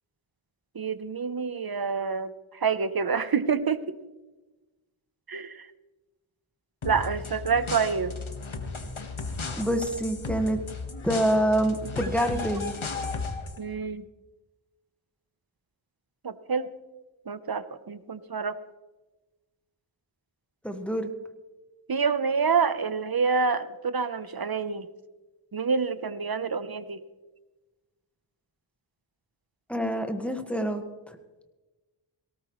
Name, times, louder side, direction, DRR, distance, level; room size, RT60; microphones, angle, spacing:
voice 1, 0.7-3.8 5.3-5.7 6.8-8.2 13.6-14.0 16.2-16.7 17.3-18.6 21.9-24.9 25.5-27.0, right 5 dB, 45° right, 13 dB, 0.9 m, -27 dB
sound 1, 6.8-13.6, left 4 dB, 70° left, 1.6 m, -35 dB
voice 2, 9.6-10.6 11.0-12.7 20.6-21.1 29.7-30.8 31.1-31.2, right 1 dB, ahead, 6 dB, 1.6 m, -26 dB
18.5 x 17.5 x 3.2 m, 1.2 s
wide cardioid pair, 55°, 50 cm